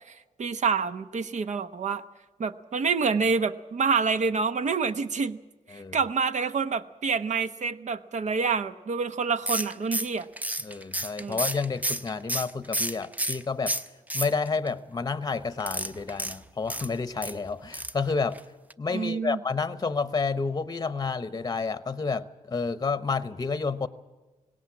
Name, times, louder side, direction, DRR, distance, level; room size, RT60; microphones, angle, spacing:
voice 1, 0.4-2.0 2.4-5.4 5.7-10.3 11.2-11.4 18.9-19.4, right 5 dB, 55° right, 11 dB, 0.9 m, -27 dB
sound 1, 9.5-13.4 13.7-14.7 15.6-17.3 17.7-18.0 18.3-18.4 18.7-18.8, right 1 dB, 10° right, 0.8 m, -31 dB
voice 2, 10.6-13.7 14.1-18.4 18.8-23.9, left 4 dB, 25° left, 14 dB, 0.9 m, -30 dB
19.0 x 17.5 x 8.5 m, 1.2 s
cardioid pair, 75°, 14 cm